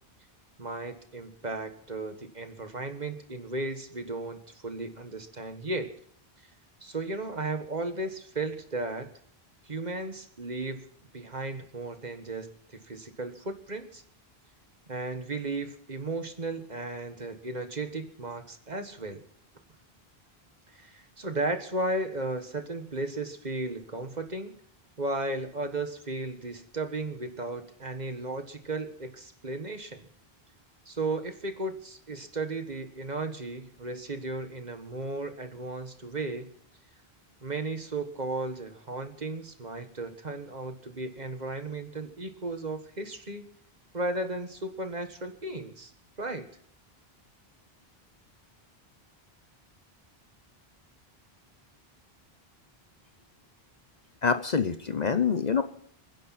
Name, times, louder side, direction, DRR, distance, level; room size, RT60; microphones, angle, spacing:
voice 1, 0.6-5.9 6.8-9.1 9.6-10.9 11.1-14.0 14.9-19.2 20.7-24.6 25.0-30.1 30.9-36.5 37.4-43.4 43.9-45.9 46.2-46.5, right 2 dB, 45° right, 7 dB, 1.7 m, -35 dB
voice 2, 54.2-55.6, left 6 dB, 45° left, 10 dB, 0.9 m, -26 dB
30.0 x 10.5 x 4.3 m, 0.64 s
omnidirectional pair, 1.0 m